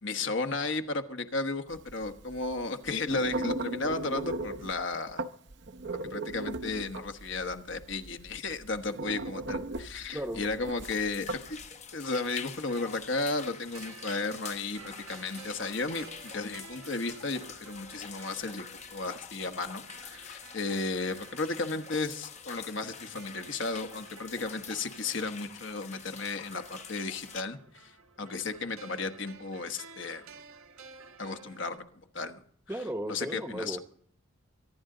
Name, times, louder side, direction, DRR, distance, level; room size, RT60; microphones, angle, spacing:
voice 1, 0.0-5.3 6.0-11.6 11.9-30.3 31.2-32.4 33.1-33.8, left 3 dB, 60° left, 8 dB, 1.3 m, -34 dB
sound 1, 1.7-11.7, right 2 dB, 55° right, 0.8 m, -37 dB
voice 2, 10.1-10.4 32.7-33.8, right 1 dB, 10° right, 2 dB, 0.9 m, -35 dB
sound 2, 10.8-27.4, left 7 dB, 35° left, 0.9 m, -46 dB
sound 3, 12.6-31.8, right 5 dB, 85° right, 1.5 m, -52 dB
24.5 x 11.5 x 3.9 m, 0.62 s
head